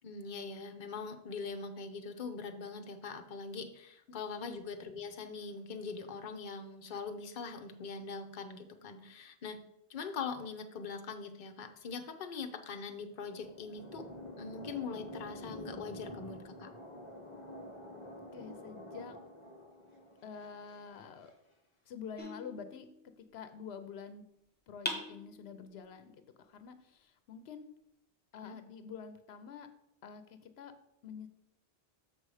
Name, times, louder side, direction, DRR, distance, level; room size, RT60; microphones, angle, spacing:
voice 1, 0.0-9.6 9.9-14.1 14.4-16.7 28.4-28.6, left 5 dB, 55° left, 5 dB, 0.8 m, -42 dB
sound 1, 12.8-21.3, left 1 dB, 30° left, 1.2 m, -48 dB
voice 2, 18.3-19.2 20.2-21.3 21.9-24.2 24.7-27.7 28.3-29.7 30.0-30.7 31.0-31.3, left 6 dB, 85° left, 10 dB, 0.9 m, -47 dB
sound 2, 22.2-23.3 24.8-25.9, left 1 dB, 10° left, 1.2 m, -42 dB
7.0 x 5.5 x 4.8 m, 0.79 s
omnidirectional pair, 1.0 m